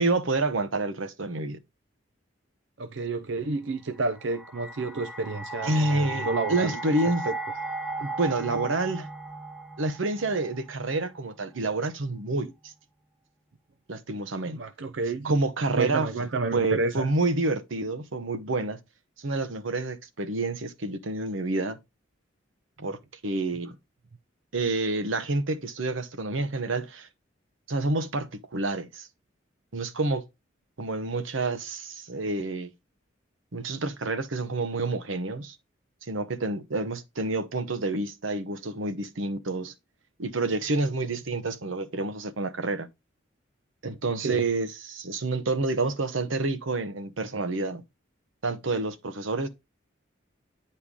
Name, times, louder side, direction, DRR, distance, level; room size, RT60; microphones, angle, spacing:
voice 1, 0.0-1.6 5.6-7.2 8.0-9.1 9.8-12.7 13.9-14.6 15.2-16.1 16.5-18.8 19.2-21.8 22.8-23.8 24.5-27.1 27.7-29.1 29.7-30.2 30.8-32.7 33.5-35.6 36.1-39.7 40.2-42.9 43.8-47.8 48.4-49.5, right 2 dB, 90° right, 1.0 m, -28 dB
voice 2, 2.8-7.4 14.5-15.3 15.8-17.1 44.2-44.4, right 3 dB, 70° right, 0.5 m, -30 dB
sound 1, 4.0-11.1, right 2 dB, 5° right, 0.7 m, -36 dB
9.8 x 4.4 x 3.7 m
head